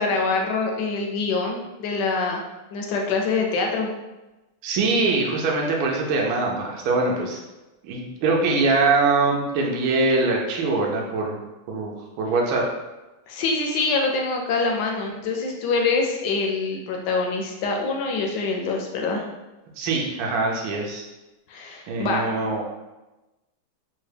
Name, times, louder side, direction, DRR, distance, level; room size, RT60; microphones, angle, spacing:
voice 1, 0.0-2.4 2.7-3.9 13.3-19.3 21.5-22.3, left 4 dB, 75° left, 1 dB, 1.0 m, -25 dB
voice 2, 4.6-7.4 7.9-11.4 11.7-12.6 19.8-21.0 21.9-22.6, right 3 dB, 75° right, -1 dB, 1.3 m, -23 dB
3.8 x 2.2 x 3.2 m, 1.1 s
omnidirectional pair, 2.2 m